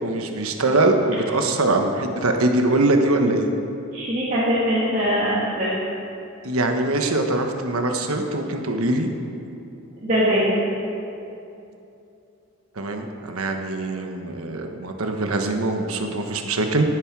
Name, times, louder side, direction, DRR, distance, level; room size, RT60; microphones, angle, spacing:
voice 1, 0.0-3.5 6.4-9.1 12.8-16.9, right 2 dB, 75° right, 4 dB, 1.2 m, -22 dB
voice 2, 3.9-5.7 10.0-10.4, equal, 35° right, -10 dB, 2.4 m, -21 dB
18.0 x 9.7 x 4.8 m, 2.7 s
head